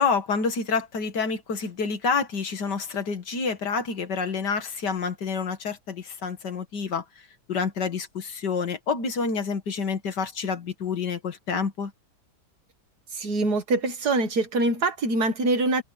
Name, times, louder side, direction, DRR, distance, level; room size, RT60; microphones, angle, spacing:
voice 1, 0.0-7.0 7.5-11.9, left 5 dB, 90° left, 2.5 m, -28 dB
voice 2, 13.1-15.8, right 2 dB, 70° right, 2.2 m, -24 dB
omnidirectional pair, 1.8 m